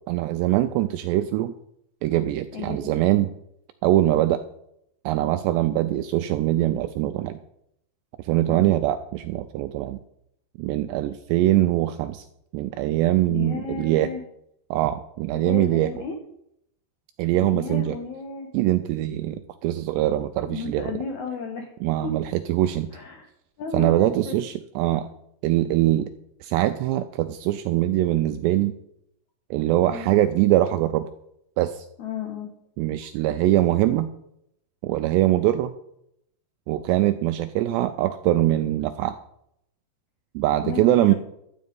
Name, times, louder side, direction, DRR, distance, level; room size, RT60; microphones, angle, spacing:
voice 1, 0.1-1.5 2.0-3.3 3.8-4.4 5.1-7.4 8.2-10.0 10.6-12.2 12.5-14.1 14.7-15.9 17.2-18.0 18.5-20.9 21.8-22.9 23.7-25.1 25.4-26.1 26.4-28.7 29.5-31.1 31.6-31.9 32.8-34.1 34.8-35.7 36.7-39.2 40.4-41.1, right 14 dB, 85° right, 9 dB, 2.4 m, -22 dB
voice 2, 2.5-3.0 8.5-8.7 13.3-14.2 15.3-16.2 17.5-18.5 20.4-21.7 22.0-22.1 22.9-23.3 23.6-24.4 29.8-30.1 32.0-32.5 40.6-41.1, left 6 dB, 85° left, 3 dB, 1.7 m, -33 dB
13.0 x 8.5 x 5.3 m, 0.75 s
omnidirectional pair, 5.5 m